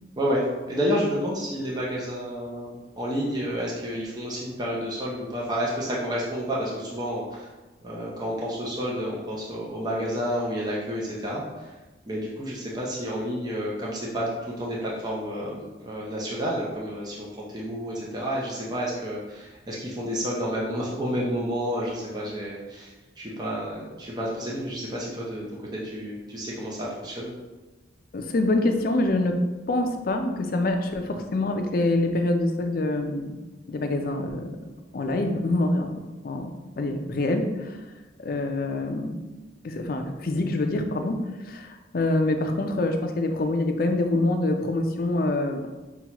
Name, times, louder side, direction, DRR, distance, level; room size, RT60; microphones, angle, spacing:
voice 1, 0.2-7.5 7.8-11.7 12.1-27.3, equal, 20° right, -5 dB, 0.5 m, -30 dB
voice 2, 28.1-29.4 29.7-33.4 33.7-34.6 34.9-37.8 38.2-39.2 39.6-45.7, left 2 dB, 50° left, 5 dB, 0.4 m, -25 dB
5.6 x 2.3 x 2.9 m, 1.2 s
head